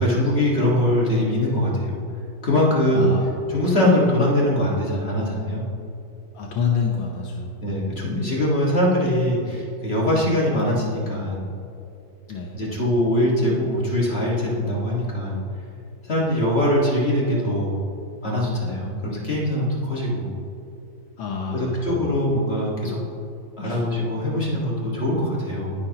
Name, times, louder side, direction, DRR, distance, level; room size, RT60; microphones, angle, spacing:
voice 1, 0.0-1.9 2.4-3.1 3.5-5.7 7.6-11.5 12.5-15.4 16.0-17.8 18.2-20.3 21.5-23.0 23.6-25.7, left 1 dB, 35° left, -4 dB, 1.8 m, -22 dB
voice 2, 2.9-3.3 6.3-7.5 12.3-12.6 21.2-21.9 23.6-23.8, left 6 dB, 80° left, -1 dB, 1.7 m, -27 dB
19.0 x 6.5 x 2.9 m, 2.7 s
omnidirectional pair, 2.1 m